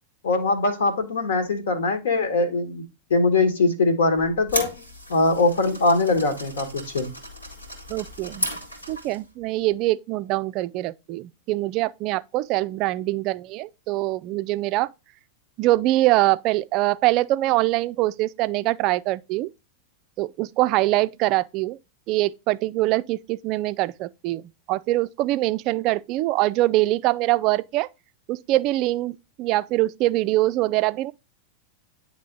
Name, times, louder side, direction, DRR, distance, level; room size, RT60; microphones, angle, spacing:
voice 1, 0.2-2.8 3.1-7.1, left 3 dB, 65° left, 1.3 m, -22 dB
sound 1, 4.2-9.3, right 1 dB, 90° left, 1.9 m, -34 dB
voice 2, 7.9-8.5 8.9-14.9 15.6-19.5 20.2-21.8 22.1-24.4 24.7-27.9 28.3-31.1, right 17 dB, 40° right, 0.3 m, -23 dB
9.5 x 3.3 x 3.8 m
figure-of-eight pair, 90°, 0 cm